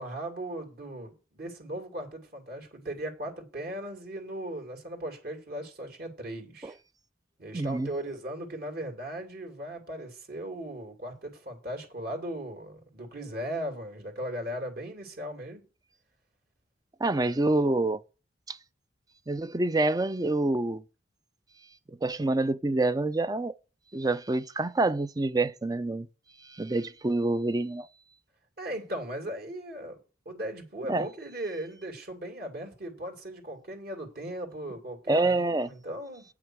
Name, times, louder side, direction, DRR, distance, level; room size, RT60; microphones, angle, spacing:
voice 1, 0.0-6.8 7.4-15.6 28.6-30.0 30.3-36.2, right 1 dB, 50° right, 2.5 m, -38 dB
voice 2, 7.5-7.9 17.0-18.0 18.5-18.6 19.3-20.8 22.0-23.5 23.9-26.1 26.4-27.9 30.9-31.1 35.1-35.7, right 2 dB, 20° right, 0.4 m, -27 dB
8.8 x 5.9 x 6.1 m
head